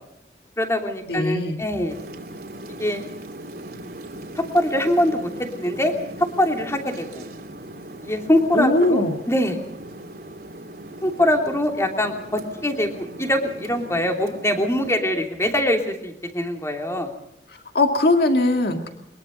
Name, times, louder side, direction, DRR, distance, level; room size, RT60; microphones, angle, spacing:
voice 1, 0.6-2.0 2.8-3.0 4.4-5.3 5.5-5.9 6.4-7.2 8.0-9.6 11.0-17.2, left 1 dB, 15° left, 3 dB, 3.0 m, -23 dB
voice 2, 1.1-1.6 8.5-9.2 17.7-18.9, left 2 dB, 60° left, 5 dB, 2.1 m, -20 dB
sound 1, 1.9-14.9, right 1 dB, 55° right, 3.1 m, -39 dB
23.0 x 22.0 x 5.3 m, 0.78 s
head